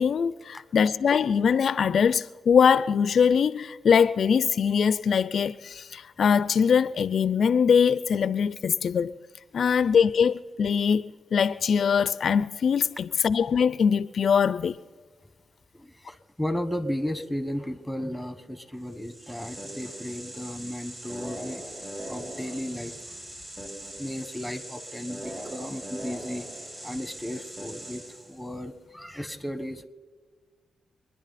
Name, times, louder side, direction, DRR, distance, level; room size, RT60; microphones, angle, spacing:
voice 1, 0.0-9.1 9.5-14.8, left 6 dB, 70° left, 0.4 m, -22 dB
voice 2, 15.7-21.6 22.1-23.0 24.0-26.5 26.8-29.8, equal, ahead, 1.3 m, -34 dB
sound 1, 18.9-28.5, right 1 dB, 30° right, 5.4 m, -40 dB
27.0 x 10.5 x 4.2 m
cardioid pair, 70°, 0 cm